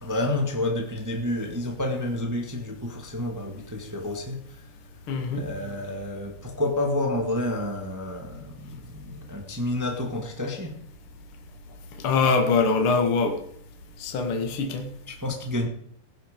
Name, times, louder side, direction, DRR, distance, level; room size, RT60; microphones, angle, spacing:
voice 1, 0.0-4.7 5.3-10.8 15.1-15.7, left 1 dB, 15° right, 0.5 m, -29 dB
voice 2, 5.1-5.5 12.0-13.4 14.0-14.9, left 4 dB, 45° left, 2.2 m, -23 dB
18.0 x 9.7 x 5.1 m
omnidirectional pair, 4.1 m